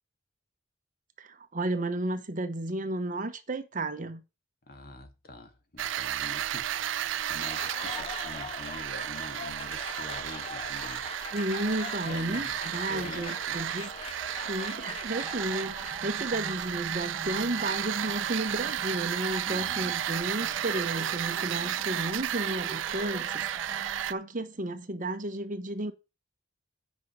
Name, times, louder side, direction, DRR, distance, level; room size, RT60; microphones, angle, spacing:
voice 1, 1.2-4.2 11.3-13.9 14.5-25.9, right 1 dB, 45° right, 1.1 m, -33 dB
voice 2, 4.7-11.4 12.0-12.6 12.9-13.8 19.5-20.0, left 1 dB, 55° left, 1.9 m, -46 dB
sound 1, 5.8-24.1, right 11 dB, 80° right, 0.4 m, -33 dB
Applause, 7.2-16.5, left 5 dB, 30° left, 0.5 m, -42 dB
sound 2, 15.1-24.1, right 2 dB, 25° right, 0.7 m, -43 dB
8.5 x 5.4 x 6.4 m
head